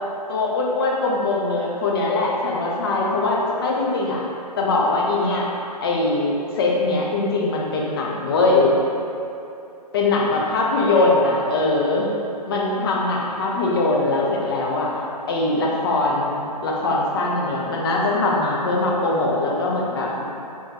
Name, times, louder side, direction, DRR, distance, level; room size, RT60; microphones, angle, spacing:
voice 1, 0.3-4.2 4.6-5.5 5.8-8.7 9.9-12.1 12.5-14.9 15.3-20.2, left 2 dB, 35° left, -3 dB, 0.5 m, -21 dB
3.4 x 3.1 x 2.7 m, 2.8 s
figure-of-eight pair, 140°, 21 cm